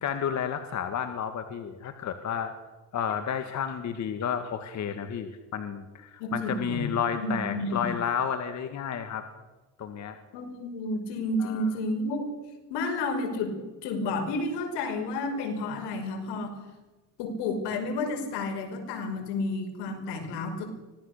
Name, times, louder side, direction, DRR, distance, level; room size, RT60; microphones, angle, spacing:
voice 1, 0.0-2.5 2.9-9.2 9.8-10.2 11.4-11.7, left 8 dB, 40° left, 7 dB, 2.1 m, -31 dB
voice 2, 6.2-7.9 10.3-12.3 12.7-16.6 17.2-20.6, left 2 dB, 80° left, 5 dB, 5.5 m, -31 dB
24.5 x 18.5 x 6.8 m, 1.2 s
cardioid pair, 115°, 41 cm